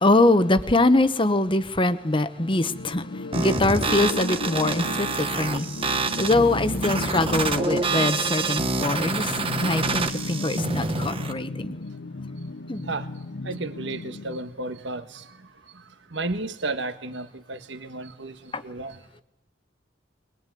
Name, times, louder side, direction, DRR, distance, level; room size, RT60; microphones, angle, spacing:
voice 1, 0.0-3.1 3.3-11.7 12.7-12.8 18.5-18.6, left 2 dB, 25° left, 1.1 m, -23 dB
sound 1, 2.4-14.4, left 2 dB, 60° left, 0.9 m, -34 dB
sound 2, 3.3-11.3, right 3 dB, 30° right, 1.4 m, -27 dB
voice 2, 13.4-15.3 16.1-19.0, right 2 dB, 65° right, 1.6 m, -33 dB
22.5 x 21.0 x 9.3 m
head